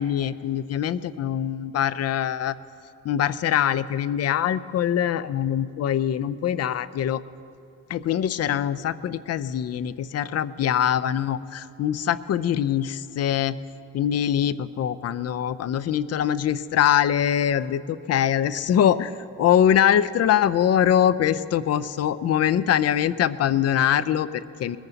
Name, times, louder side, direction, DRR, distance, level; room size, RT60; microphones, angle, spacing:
voice 1, 0.0-2.6 3.0-7.2 7.9-13.6 13.9-24.8, left 10 dB, 55° left, 17 dB, 0.6 m, -23 dB
21.0 x 15.0 x 4.0 m, 2.8 s
cardioid pair, 90°, 30 cm